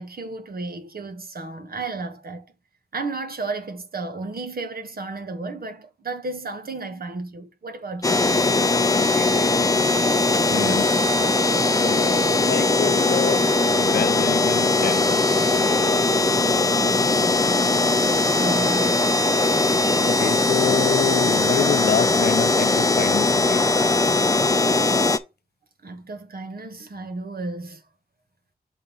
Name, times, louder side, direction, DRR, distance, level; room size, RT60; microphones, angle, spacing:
voice 1, 0.0-2.5 2.9-8.3 10.5-10.9 16.4-17.7 18.3-19.0 25.8-27.8, right 3 dB, 70° right, 1.4 m, -33 dB
sound 1, 8.0-25.2, left 3 dB, 20° left, 0.6 m, -20 dB
voice 2, 8.8-9.7 10.5-10.9 11.8-13.5 13.8-15.3 20.0-23.7, left 7 dB, 85° left, 0.6 m, -27 dB
6.6 x 3.7 x 5.6 m
wide cardioid pair, 90°, 16 cm